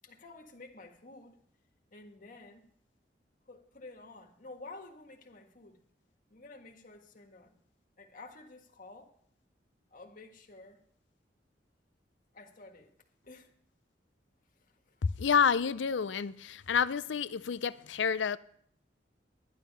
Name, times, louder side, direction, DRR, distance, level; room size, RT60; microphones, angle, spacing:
voice 1, 0.0-1.4 1.9-2.7 3.5-5.8 6.3-7.6 8.0-9.1 9.9-10.8 12.3-12.9 13.2-13.5 14.6-15.1, left 2 dB, 50° left, 1.7 m, -51 dB
voice 2, 15.2-18.4, left 6 dB, 80° left, 0.5 m, -29 dB
11.0 x 11.0 x 5.4 m
head